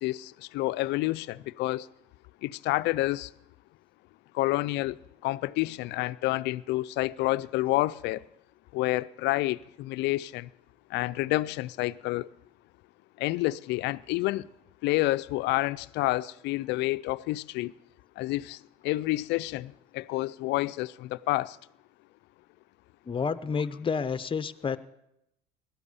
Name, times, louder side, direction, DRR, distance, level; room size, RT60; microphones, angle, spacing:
voice 1, 0.0-1.9 2.4-3.3 4.3-5.0 5.2-8.2 8.7-10.5 10.9-12.3 13.2-14.5 14.8-17.7 18.2-18.6 18.8-21.6, left 18 dB, 70° left, 0.5 m, -29 dB
voice 2, 23.1-24.8, left 6 dB, 30° left, 0.8 m, -30 dB
17.0 x 12.0 x 6.9 m
supercardioid pair, 75°, 18 cm